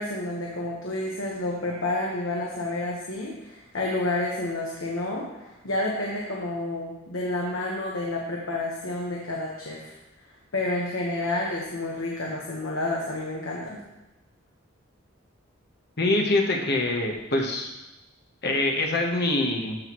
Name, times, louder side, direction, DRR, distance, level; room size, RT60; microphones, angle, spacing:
voice 1, 0.0-9.9 10.5-13.8, left 2 dB, 75° left, -2 dB, 1.2 m, -30 dB
voice 2, 16.0-17.7 18.4-19.8, left 2 dB, 50° left, 2 dB, 1.1 m, -24 dB
13.0 x 6.2 x 3.1 m, 1.0 s
head